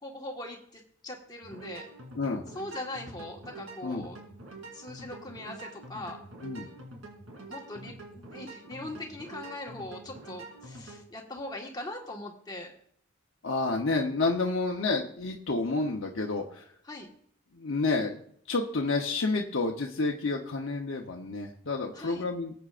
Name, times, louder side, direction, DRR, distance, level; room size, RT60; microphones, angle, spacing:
voice 1, 0.0-1.9 2.5-4.2 4.7-6.2 7.5-12.7 16.8-17.1 21.9-22.2, left 1 dB, 20° left, 0 dB, 1.5 m, -41 dB
sound 1, 1.4-11.0, right 2 dB, 90° right, 2.8 m, -46 dB
voice 2, 13.4-16.6 17.5-18.2 18.5-22.5, left 3 dB, 75° left, 0 dB, 0.9 m, -29 dB
19.5 x 8.0 x 2.5 m, 0.64 s
head